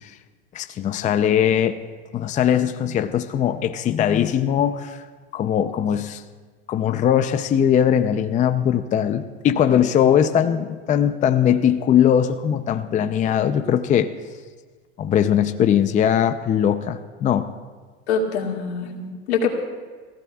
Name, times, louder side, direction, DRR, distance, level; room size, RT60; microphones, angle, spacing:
voice 1, 0.5-1.8 2.1-5.0 5.3-6.2 6.7-14.1 15.0-17.5, left 9 dB, 25° left, 9 dB, 0.6 m, -20 dB
voice 2, 18.1-19.5, left 5 dB, 85° left, 1 dB, 2.4 m, -24 dB
28.5 x 15.5 x 2.4 m, 1.4 s
supercardioid pair, 120°, 32 cm